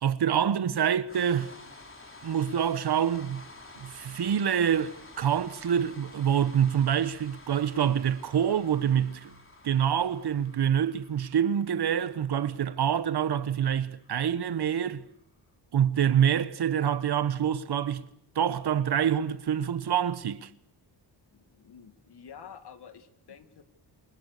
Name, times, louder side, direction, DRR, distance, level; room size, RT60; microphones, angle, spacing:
voice 1, 0.0-1.5 2.2-3.5 3.8-9.3 9.6-15.0 15.7-18.1 18.3-20.5, right 9 dB, 65° right, 1.3 m, -26 dB
sound 1, 1.0-15.2, left 2 dB, 30° left, 4.0 m, -51 dB
voice 2, 21.3-23.6, left 7 dB, 65° left, 2.4 m, -49 dB
28.0 x 24.5 x 6.7 m
wide cardioid pair, 115°, 43 cm